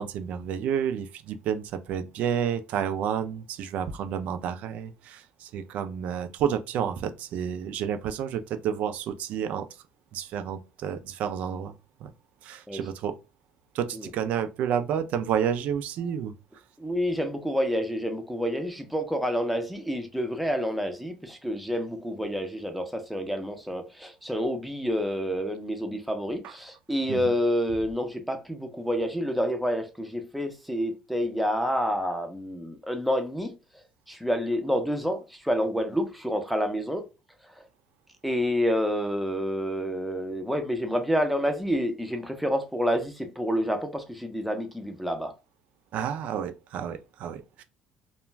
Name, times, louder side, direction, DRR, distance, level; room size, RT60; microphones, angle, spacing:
voice 1, 0.0-9.7 10.1-11.7 12.0-12.1 12.4-13.2 13.7-16.3 26.4-26.5 27.1-27.2 45.9-47.6, right 8 dB, 65° right, 0.4 m, -30 dB
voice 2, 16.8-33.5 34.1-37.1 37.6-37.7 38.2-45.3, equal, ahead, 0.5 m, -28 dB
2.4 x 2.2 x 3.0 m
cardioid pair, 130°, 3 cm